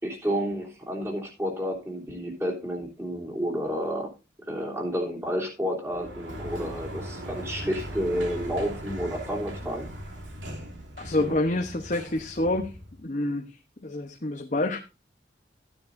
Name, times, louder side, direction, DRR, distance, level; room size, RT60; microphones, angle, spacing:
voice 1, 0.0-4.1 4.4-9.9, equal, 15° right, -3 dB, 3.2 m, -30 dB
Sliding door, 5.9-13.0, equal, 85° right, 2.9 m, -39 dB
voice 2, 11.0-12.7 13.0-13.6 13.8-14.8, left 2 dB, 40° left, 4 dB, 1.0 m, -27 dB
14.5 x 9.7 x 2.6 m, 0.29 s
head